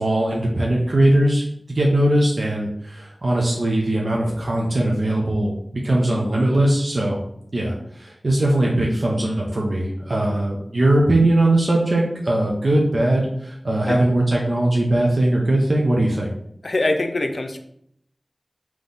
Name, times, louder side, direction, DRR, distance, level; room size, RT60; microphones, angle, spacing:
voice 1, 0.0-7.2 7.5-16.3, right 1 dB, 60° right, -2 dB, 0.7 m, -20 dB
voice 2, 16.6-17.6, left 2 dB, 70° left, 5 dB, 0.5 m, -23 dB
3.6 x 3.1 x 3.9 m, 0.71 s
wide cardioid pair, 60°, 0 cm